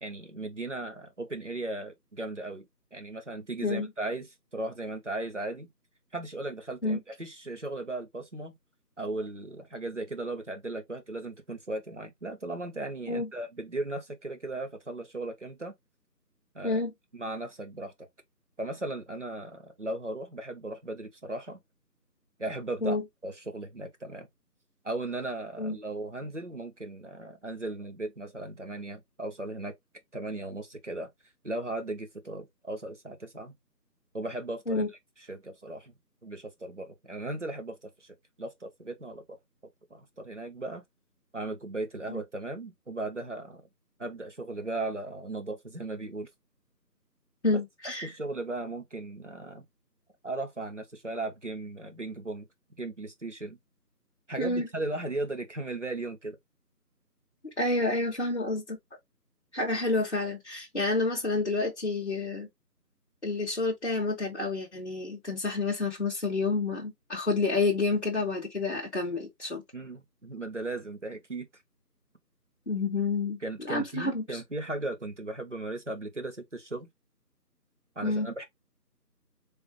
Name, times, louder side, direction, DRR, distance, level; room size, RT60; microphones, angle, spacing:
voice 1, 0.0-2.7 2.9-5.7 6.1-8.6 9.0-15.7 16.5-16.8 17.1-18.1 18.6-21.6 22.4-23.0 23.2-24.3 24.8-29.7 30.1-31.1 31.4-33.5 34.1-34.9 35.3-35.9 36.2-39.4 39.9-40.8 41.3-43.6 44.0-46.3 48.0-49.6 50.2-52.5 52.8-53.6 54.3-56.4 69.7-71.5 73.4-76.9 78.0-78.4, right 2 dB, 45° right, 0.7 m, -37 dB
voice 2, 47.4-48.1 54.4-54.7 57.4-58.8 59.5-62.5 63.2-69.6 72.7-74.4 78.0-78.3, left 3 dB, 45° left, 0.9 m, -29 dB
3.2 x 2.5 x 3.0 m
figure-of-eight pair, 170°, 49 cm